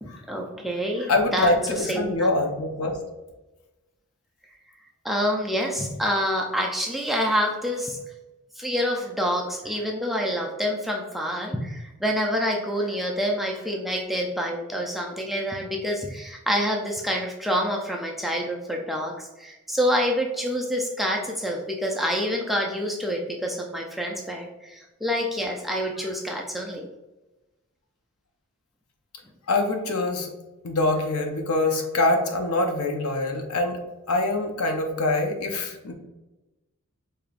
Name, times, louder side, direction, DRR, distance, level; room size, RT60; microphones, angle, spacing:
voice 1, 0.0-1.5 1.9-2.3 5.0-8.0 8.6-26.9, equal, ahead, -1 dB, 0.3 m, -27 dB
voice 2, 1.1-2.9 29.5-30.3 30.6-33.8 34.1-35.9, left 2 dB, 90° left, 4 dB, 0.7 m, -24 dB
4.9 x 2.9 x 2.4 m, 1.1 s
head